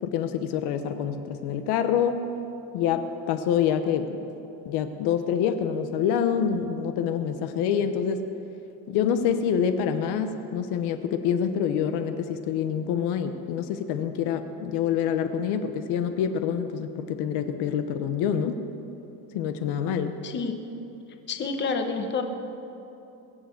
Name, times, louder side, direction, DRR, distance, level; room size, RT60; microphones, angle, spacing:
voice 1, 0.0-2.2 2.7-4.2 4.6-8.2 8.9-18.6 19.3-20.2, left 8 dB, 70° left, 8 dB, 1.0 m, -26 dB
voice 2, 21.3-22.2, left 4 dB, 25° left, 5 dB, 1.1 m, -28 dB
21.0 x 7.3 x 7.8 m, 2.9 s
cardioid pair, 160°, 41 cm